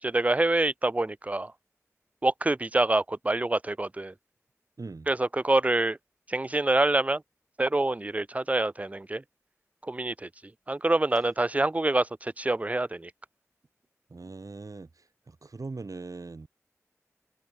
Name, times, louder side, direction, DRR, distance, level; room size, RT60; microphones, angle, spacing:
voice 1, 0.0-1.5 2.2-4.1 5.1-6.0 6.3-7.2 7.6-9.2 9.8-10.3 10.7-13.1, right 2 dB, 25° right, 0.4 m, -26 dB
voice 2, 14.1-16.5, right 3 dB, 75° right, 4.4 m, -41 dB
wide cardioid pair, 60°, 6 cm